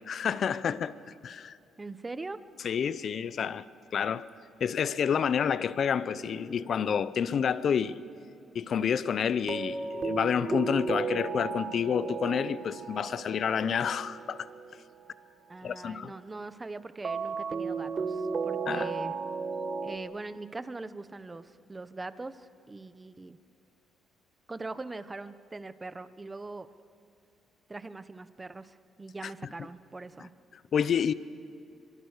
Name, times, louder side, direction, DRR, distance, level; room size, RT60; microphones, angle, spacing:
voice 1, 0.1-1.0 1.2-1.6 2.6-3.6 3.9-4.3 4.6-8.0 8.5-14.5 15.6-16.1 18.7-18.9 30.7-31.1, left 7 dB, 55° left, 0.8 m, -29 dB
voice 2, 1.8-2.4 15.5-19.1 19.8-23.4 24.5-26.7 27.7-30.3, right 3 dB, 20° right, 1.0 m, -41 dB
sound 1, 6.0-7.4 9.5-15.1 17.0-20.0, right 5 dB, 45° right, 1.5 m, -35 dB
25.0 x 24.0 x 6.7 m
cardioid pair, 90°, 0 cm